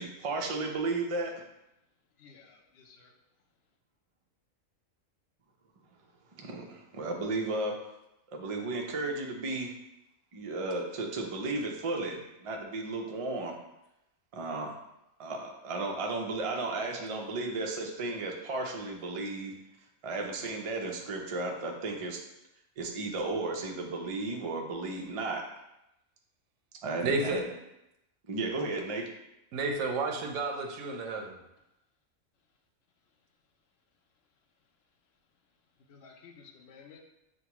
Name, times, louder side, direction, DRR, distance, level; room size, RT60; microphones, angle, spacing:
voice 1, 0.0-1.3 6.4-7.7 8.3-9.7 10.3-13.5 14.3-14.7 15.2-19.5 20.0-22.2 22.8-25.4 26.8-27.5 28.3-29.0, right 2 dB, 55° right, 1 dB, 0.3 m, -34 dB
voice 2, 2.2-3.1 35.9-37.0, left 5 dB, 60° left, 2 dB, 0.8 m, -54 dB
voice 3, 27.0-27.4 29.5-31.4, right 3 dB, 75° right, 2 dB, 0.9 m, -31 dB
6.4 x 2.2 x 2.9 m, 0.87 s
omnidirectional pair, 1.4 m